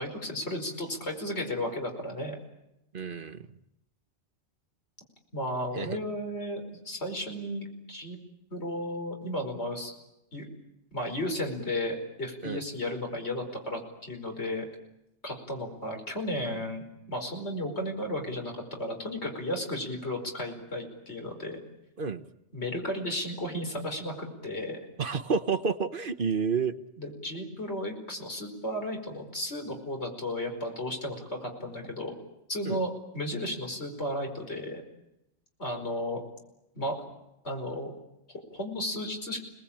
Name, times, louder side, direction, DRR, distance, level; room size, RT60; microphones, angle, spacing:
voice 1, 0.0-2.4 5.3-8.2 8.5-9.9 10.3-10.4 10.9-14.7 15.2-21.6 22.5-24.8 27.0-32.1 32.5-34.8 35.6-36.2 36.8-37.0 37.4-37.9 38.5-39.4, left 1 dB, 70° left, 3 dB, 5.3 m, -34 dB
voice 2, 2.9-3.5 5.8-6.0 12.4-12.6 22.0-22.2 25.0-26.7 32.6-32.8, right 5 dB, 50° right, 10 dB, 1.3 m, -29 dB
30.0 x 19.5 x 8.8 m, 0.88 s
omnidirectional pair, 1.2 m